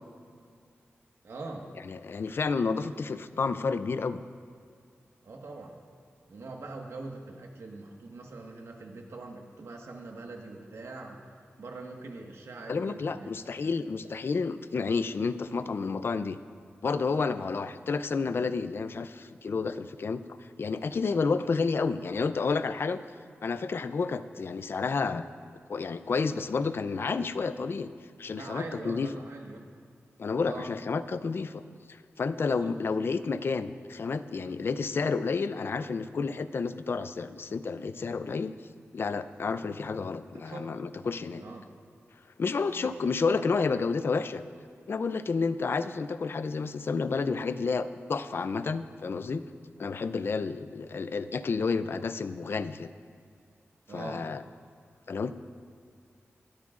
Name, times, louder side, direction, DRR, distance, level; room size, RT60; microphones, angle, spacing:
voice 1, 1.2-1.7 5.2-5.8 6.3-11.2 11.6-13.3 13.6-13.7 28.3-29.7 30.4-30.7 32.6-32.8 40.3-40.7 41.4-41.7 42.8-43.1 53.9-54.3, right 3 dB, 90° right, 1 dB, 1.5 m, -43 dB
voice 2, 1.9-4.2 12.7-16.4 16.8-20.2 20.6-23.0 23.4-25.2 25.7-27.9 28.2-29.1 30.2-31.6 31.9-38.6 38.9-41.4 42.4-44.4 44.9-49.4 49.8-52.9 53.9-54.4 55.1-55.3, left 4 dB, 55° left, 12 dB, 0.5 m, -30 dB
21.0 x 13.5 x 2.5 m, 2.2 s
wide cardioid pair, 140°, 5 cm